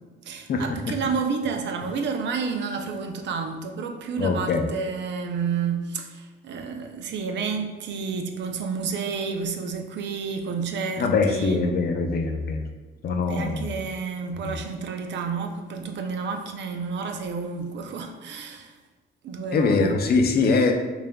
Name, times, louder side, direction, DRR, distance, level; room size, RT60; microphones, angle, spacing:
voice 1, 0.2-11.7 13.3-18.8 19.2-20.0, right 5 dB, 65° right, 5 dB, 0.5 m, -30 dB
voice 2, 4.2-4.7 11.0-12.6 13.0-13.8 14.3-14.6 19.5-20.7, left 4 dB, 50° left, 4 dB, 0.5 m, -23 dB
6.5 x 2.4 x 2.2 m, 1.2 s
cardioid pair, 90°, 20 cm